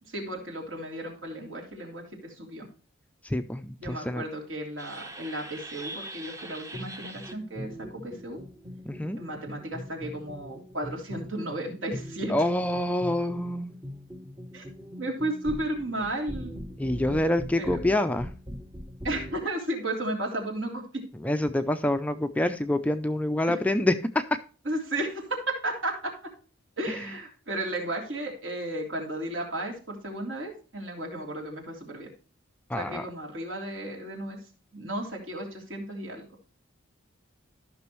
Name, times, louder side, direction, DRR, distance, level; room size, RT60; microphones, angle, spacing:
voice 1, 0.0-2.7 3.8-8.4 9.2-12.3 14.5-14.6 15.0-16.5 17.6-17.8 19.0-21.0 23.4-23.6 24.6-26.3 26.8-32.1 32.8-34.4 34.7-36.2, right 1 dB, 65° right, 0 dB, 3.1 m, -34 dB
voice 2, 3.2-4.2 8.9-9.2 12.3-13.7 16.8-18.3 21.2-24.2 32.7-33.0, left 1 dB, 5° left, 9 dB, 0.4 m, -26 dB
sound 1, 4.8-19.5, equal, 15° right, 0.7 m, -41 dB
13.5 x 6.1 x 3.1 m, 0.38 s
head